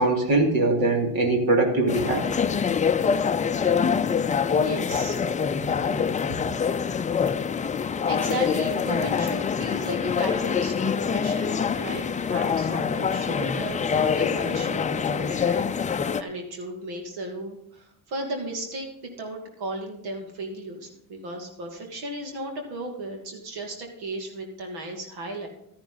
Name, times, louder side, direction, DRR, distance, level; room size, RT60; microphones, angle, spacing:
voice 1, 0.0-2.2, right 2 dB, 65° right, 2 dB, 2.9 m, -22 dB
sound 1, 1.9-16.2, left 6 dB, 20° left, 0.5 m, -25 dB
voice 2, 4.5-5.2 5.7-6.0 8.1-15.7 16.2-25.5, right 1 dB, 85° right, 2 dB, 2.7 m, -35 dB
13.0 x 10.5 x 4.0 m, 0.73 s
cardioid pair, 115°, 39 cm